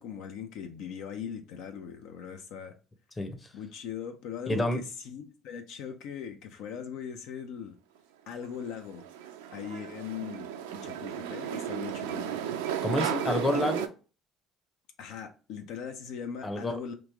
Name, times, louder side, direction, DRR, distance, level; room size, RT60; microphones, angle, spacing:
voice 1, 0.0-2.7 3.5-7.8 8.3-9.0 9.5-12.3 15.0-16.9, left 7 dB, 75° left, 0.4 m, -40 dB
voice 2, 3.2-3.5 4.5-4.8 12.8-13.9 16.4-16.8, left 1 dB, 20° left, 0.7 m, -29 dB
sound 1, 8.4-13.9, right 9 dB, 90° right, 0.3 m, -34 dB
3.0 x 2.5 x 3.3 m
supercardioid pair, 75°, 0 cm